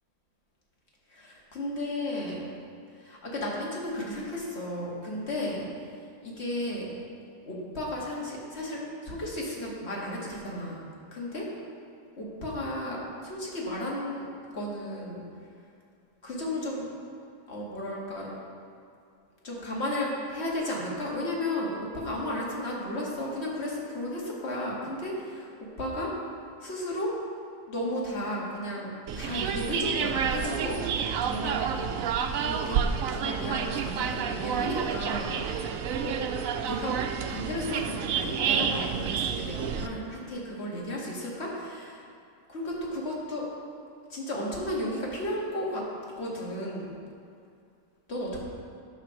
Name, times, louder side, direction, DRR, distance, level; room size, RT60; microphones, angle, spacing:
voice 1, 1.1-2.4 3.0-5.7 6.2-6.9 7.5-10.8 11.1-11.5 12.2-14.3 14.5-15.2 16.2-16.9 17.5-18.3 19.4-26.1 26.6-27.1 27.7-31.6 32.4-32.9 33.1-36.2 36.6-37.0 37.3-42.0 42.5-43.5 44.1-45.8 46.2-46.9 48.1-48.4, left 1 dB, 50° left, -4 dB, 2.0 m, -34 dB
sound 1, 29.1-39.9, right 7 dB, 85° right, 1.0 m, -29 dB
11.5 x 4.2 x 6.3 m, 2.4 s
omnidirectional pair, 1.4 m